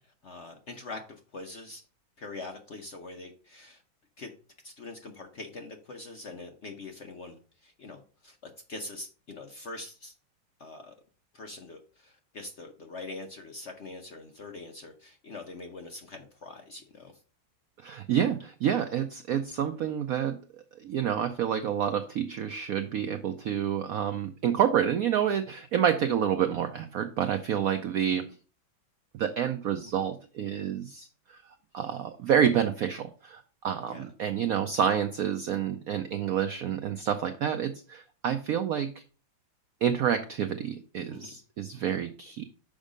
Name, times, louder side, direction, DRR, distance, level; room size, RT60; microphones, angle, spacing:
voice 1, 0.0-1.8 2.2-3.8 4.2-4.3 4.6-10.1 10.6-10.9 11.3-17.2 33.9-34.1 41.1-41.4, left 3 dB, 55° left, 4 dB, 0.8 m, -43 dB
voice 2, 17.8-20.4 20.8-28.2 29.2-31.4 31.7-38.9 39.8-42.4, right 9 dB, 80° right, 8 dB, 0.8 m, -28 dB
6.3 x 5.2 x 5.0 m, 0.38 s
omnidirectional pair, 2.2 m